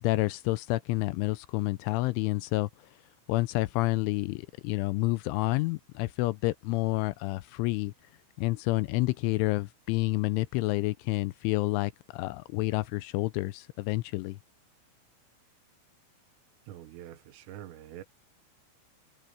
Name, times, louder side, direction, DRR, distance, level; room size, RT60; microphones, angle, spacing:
voice 1, 0.0-2.7 3.3-7.9 8.4-14.4, left 20 dB, 85° left, 2.9 m, -29 dB
voice 2, 16.7-18.0, right 12 dB, 80° right, 3.9 m, -45 dB
omnidirectional pair, 5.8 m